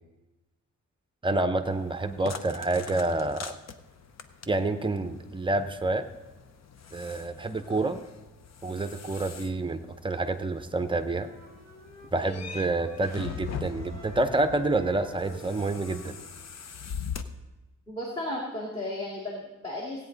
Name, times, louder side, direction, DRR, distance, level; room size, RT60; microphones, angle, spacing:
voice 1, 1.2-3.6 4.5-6.1 6.9-8.0 8.6-11.3 12.1-16.2, right 2 dB, 15° right, 8 dB, 0.6 m, -28 dB
sound 1, 1.6-17.2, left 7 dB, 55° left, 0.7 m, -43 dB
sound 2, 11.1-16.3, equal, 75° left, 3.4 m, -47 dB
voice 2, 17.9-20.0, left 1 dB, 20° left, -4 dB, 2.1 m, -34 dB
16.5 x 8.9 x 3.9 m, 1.1 s
wide cardioid pair, 140°, 32 cm